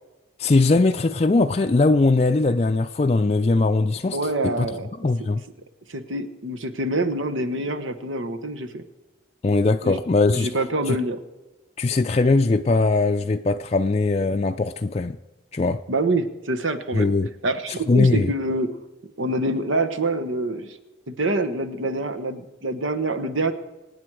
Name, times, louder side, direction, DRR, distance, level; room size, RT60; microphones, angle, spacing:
voice 1, 0.4-4.7 5.0-5.4 9.4-10.5 10.9-11.0 11.8-15.2 15.5-15.8 16.9-17.3 17.9-18.3, left 3 dB, 35° left, 0.4 m, -20 dB
voice 2, 4.1-4.9 5.9-8.8 9.8-10.0 10.3-11.2 15.9-17.1 17.4-18.7 19.2-20.8 21.1-23.5, right 2 dB, 90° right, 1.2 m, -26 dB
25.5 x 9.5 x 4.8 m
head